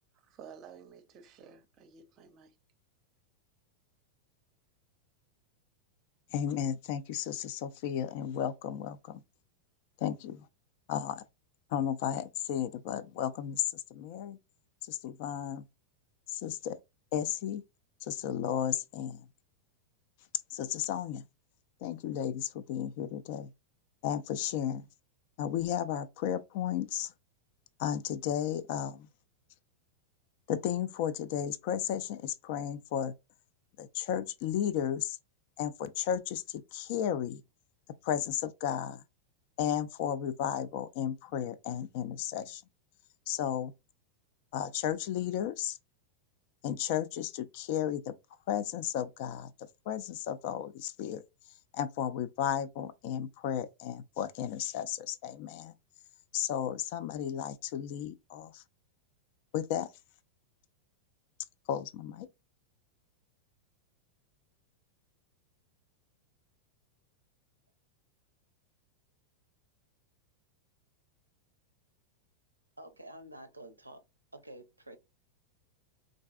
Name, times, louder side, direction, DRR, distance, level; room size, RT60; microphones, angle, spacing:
voice 1, 0.1-2.6, right 7 dB, 35° right, 0.6 m, -52 dB
voice 2, 6.3-9.2 10.0-10.5 10.9-11.2 11.7-14.4 14.8-15.6 16.3-16.8 17.1-17.6 18.0-19.3 20.5-21.2 21.8-23.5 24.0-24.9 25.4-27.1 27.8-29.1 30.5-33.1 33.8-35.2 35.6-37.4 38.0-39.0 39.6-42.6 43.3-43.7 44.5-45.8 46.6-48.2 48.5-49.5 49.9-51.2 51.7-55.7 56.3-58.6 59.5-59.9 61.7-62.3, left 10 dB, 50° left, 0.3 m, -34 dB
voice 3, 72.8-74.0 74.3-75.0, right 1 dB, 85° right, 0.4 m, -49 dB
3.8 x 2.5 x 2.3 m
figure-of-eight pair, 90°, 0 cm